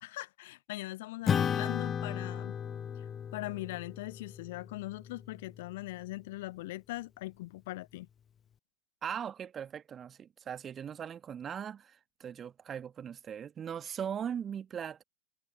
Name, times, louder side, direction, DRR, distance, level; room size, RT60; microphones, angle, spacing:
voice 1, 0.0-2.6 3.3-8.1, left 18 dB, 50° left, 0.4 m, -41 dB
Acoustic guitar / Strum, 1.3-6.0, left 8 dB, 25° left, 1.0 m, -35 dB
voice 2, 9.0-15.0, right 8 dB, 25° right, 1.5 m, -39 dB
figure-of-eight pair, 90°, 0 cm